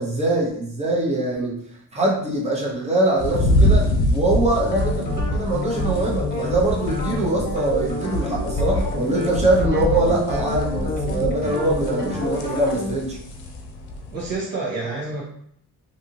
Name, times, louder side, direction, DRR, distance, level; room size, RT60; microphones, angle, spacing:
voice 1, 0.0-1.6 1.9-13.2, right 2 dB, 15° right, -2 dB, 0.8 m, -23 dB
sound 1, 3.2-14.4, left 1 dB, 80° left, 0.6 m, -25 dB
sound 2, 4.5-13.0, left 2 dB, 25° left, 1.1 m, -29 dB
voice 2, 14.1-15.2, right 3 dB, 65° right, -4 dB, 1.0 m, -29 dB
2.7 x 2.5 x 2.8 m, 0.65 s
cardioid pair, 115°, 37 cm